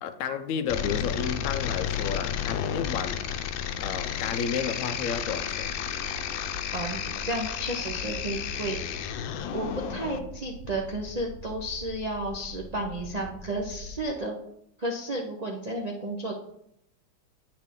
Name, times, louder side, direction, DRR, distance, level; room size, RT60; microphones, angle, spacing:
voice 1, 0.0-3.2 3.8-5.7, left 6 dB, 75° left, 0.8 m, -32 dB
sound 1, 0.7-10.2, left 9 dB, 90° left, 1.3 m, -32 dB
sound 2, 5.0-14.1, equal, 55° right, 0.8 m, -44 dB
voice 2, 6.7-9.0 9.5-14.4 14.8-16.3, right 1 dB, 85° right, 0.3 m, -32 dB
9.6 x 4.8 x 3.7 m
omnidirectional pair, 2.0 m